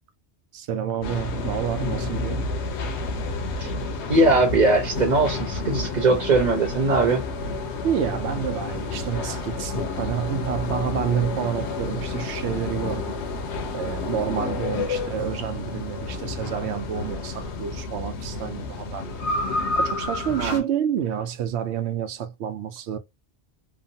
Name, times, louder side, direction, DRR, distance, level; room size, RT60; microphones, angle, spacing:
voice 1, 0.5-2.5 7.8-13.2 13.7-19.3 19.8-23.0, right 8 dB, 80° right, 0.9 m, -29 dB
sound 1, 1.0-20.6, left 3 dB, 85° left, 1.0 m, -30 dB
voice 2, 4.1-7.2 20.4-20.6, right 2 dB, 45° right, 0.8 m, -20 dB
3.0 x 2.1 x 2.6 m
omnidirectional pair, 1.1 m